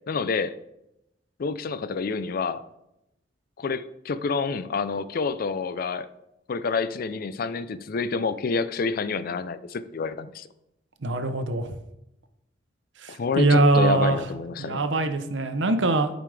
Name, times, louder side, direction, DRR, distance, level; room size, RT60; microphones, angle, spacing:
voice 1, 0.1-0.6 1.4-2.6 3.6-6.1 6.5-10.5 13.1-14.8, left 4 dB, 50° left, 13 dB, 0.4 m, -28 dB
voice 2, 11.0-11.8 13.0-14.2 14.6-16.1, right 2 dB, 80° right, 9 dB, 0.8 m, -22 dB
10.5 x 5.1 x 3.4 m, 0.86 s
head